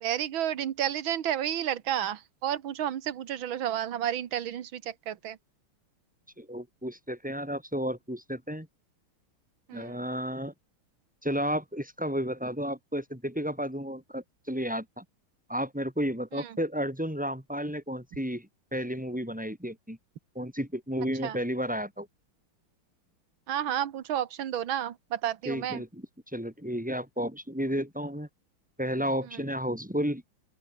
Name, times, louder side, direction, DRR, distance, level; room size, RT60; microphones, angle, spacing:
voice 1, 0.0-4.8 5.1-5.4 9.7-9.9 21.2-21.3 23.5-25.8, right 10 dB, 65° right, 2.1 m, -31 dB
voice 2, 6.4-8.7 9.7-10.5 11.2-15.0 15.5-20.0 20.3-22.1 25.4-28.3 28.8-30.2, equal, 5° right, 6.0 m, -32 dB
open air
omnidirectional pair, 2.4 m